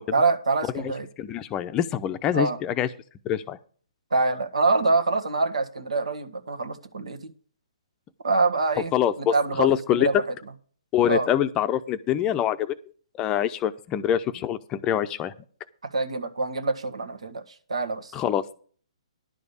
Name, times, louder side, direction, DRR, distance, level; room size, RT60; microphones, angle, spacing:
voice 1, 0.1-1.1 2.3-2.6 4.1-7.3 8.2-8.9 9.2-10.1 11.1-11.3 15.9-17.4 17.7-18.1, right 3 dB, 80° right, 8 dB, 1.6 m, -25 dB
voice 2, 1.2-2.9 3.2-3.6 8.9-10.2 10.9-12.7 13.1-15.3 18.1-18.5, left 10 dB, 20° left, 11 dB, 0.6 m, -25 dB
11.0 x 5.1 x 8.3 m, 0.43 s
hypercardioid pair, 140°, 3 cm